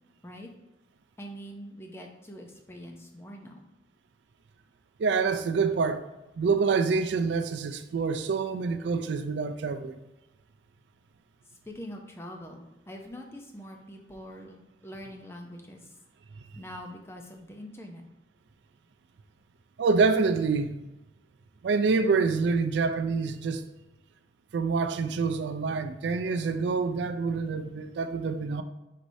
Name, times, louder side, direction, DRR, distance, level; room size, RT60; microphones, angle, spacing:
voice 1, 1.2-3.7 11.7-15.9 16.6-18.0, equal, 15° left, 0.5 m, -44 dB
voice 2, 5.0-6.0 6.4-10.0 19.8-20.7 21.6-23.6 24.5-28.6, right 4 dB, 75° right, 0.4 m, -26 dB
4.7 x 4.2 x 2.6 m
head